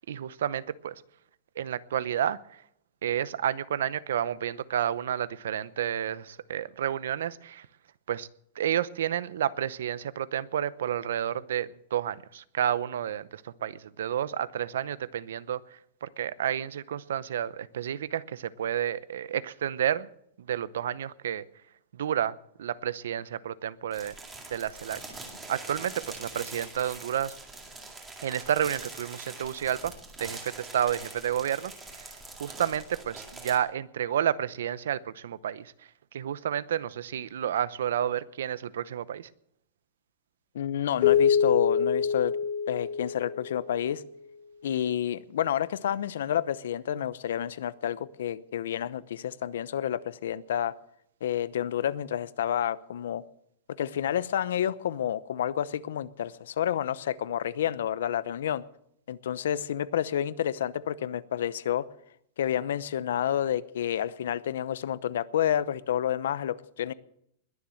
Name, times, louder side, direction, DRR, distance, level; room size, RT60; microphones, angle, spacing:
voice 1, 0.1-0.9 1.6-2.6 3.0-7.7 8.1-8.3 8.6-20.1 20.4-21.4 21.9-24.1 24.5-25.0 25.5-27.3 28.2-29.9 30.2-32.1 32.4-35.7 36.1-39.3, right 10 dB, 85° right, 18 dB, 0.8 m, -30 dB
sound 1, 23.9-33.6, right 3 dB, 10° right, 2.1 m, -44 dB
voice 2, 40.5-42.3 42.7-44.0 44.6-50.7 51.2-53.2 53.8-58.6 59.1-61.9 62.4-66.9, left 10 dB, 80° left, 18 dB, 0.8 m, -29 dB
Keyboard (musical), 41.0-44.0, left 7 dB, 50° left, 1.2 m, -25 dB
21.0 x 7.2 x 7.8 m, 0.71 s
supercardioid pair, 175°, 0 cm